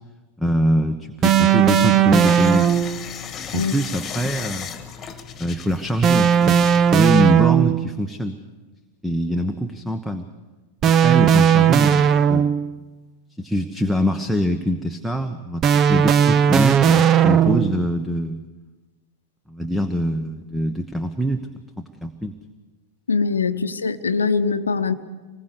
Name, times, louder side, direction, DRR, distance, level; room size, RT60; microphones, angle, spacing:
voice 1, 0.4-2.8 3.5-4.7 5.4-8.4 9.0-10.3 10.8-12.5 13.4-18.4 19.5-21.5 21.8-22.4, equal, ahead, 8 dB, 1.1 m, -24 dB
sound 1, 1.2-3.0 6.0-7.9 10.8-12.8 15.6-17.8, right 8 dB, 30° right, 0.8 m, -16 dB
sound 2, 2.2-7.2, left 7 dB, 25° left, 1.7 m, -35 dB
voice 2, 23.1-24.9, left 5 dB, 75° left, 11 dB, 1.0 m, -22 dB
25.5 x 20.5 x 6.8 m, 1.2 s
figure-of-eight pair, 90°, 0 cm